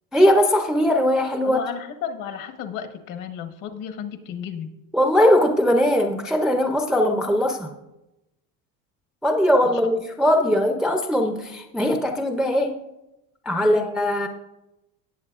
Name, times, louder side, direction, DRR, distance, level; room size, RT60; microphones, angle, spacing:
voice 1, 0.1-1.6 4.9-7.7 9.2-12.8 13.5-14.3, equal, ahead, 4 dB, 0.4 m, -20 dB
voice 2, 1.4-4.7 9.6-9.8 13.6-13.8, left 8 dB, 55° left, 8 dB, 1.1 m, -33 dB
18.0 x 7.2 x 2.4 m, 0.93 s
cardioid pair, 145°, 38 cm